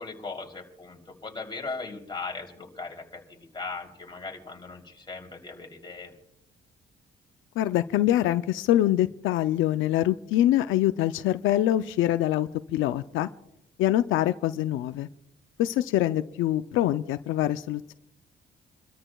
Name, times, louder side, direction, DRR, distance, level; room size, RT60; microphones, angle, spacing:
voice 1, 0.0-6.1, left 3 dB, 25° left, 0 dB, 3.2 m, -38 dB
voice 2, 7.6-13.3 13.8-15.1 15.6-17.9, left 13 dB, 85° left, 11 dB, 0.5 m, -24 dB
29.0 x 13.0 x 2.3 m, 0.78 s
cardioid pair, 90°, 20 cm